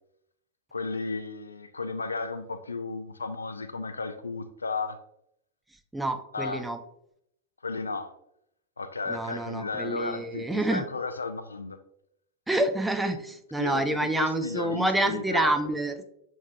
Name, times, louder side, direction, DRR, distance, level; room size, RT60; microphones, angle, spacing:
voice 1, 0.7-5.0 6.3-6.7 7.6-8.1 8.8-11.8 13.6-15.5, left 3 dB, 75° left, 0.3 m, -34 dB
voice 2, 5.9-6.8 9.1-10.9 12.5-16.0, right 1 dB, 5° right, 0.4 m, -28 dB
6.3 x 3.2 x 2.2 m
figure-of-eight pair, 90°, 0 cm